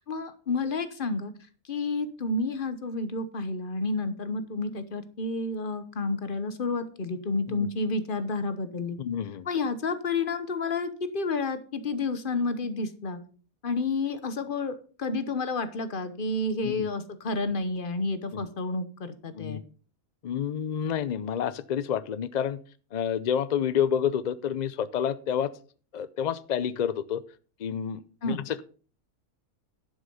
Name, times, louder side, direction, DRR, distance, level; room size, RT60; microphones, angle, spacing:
voice 1, 0.1-1.3 1.7-9.0 9.4-13.2 13.6-19.6 28.2-28.4, left 3 dB, 40° left, 11 dB, 1.1 m, -30 dB
voice 2, 9.0-9.5 16.6-16.8 18.3-18.4 19.3-19.6 20.2-22.6 22.9-25.5 25.9-27.2 27.6-28.6, left 8 dB, 80° left, 15 dB, 0.3 m, -29 dB
11.0 x 6.2 x 5.5 m, 0.40 s
omnidirectional pair, 1.5 m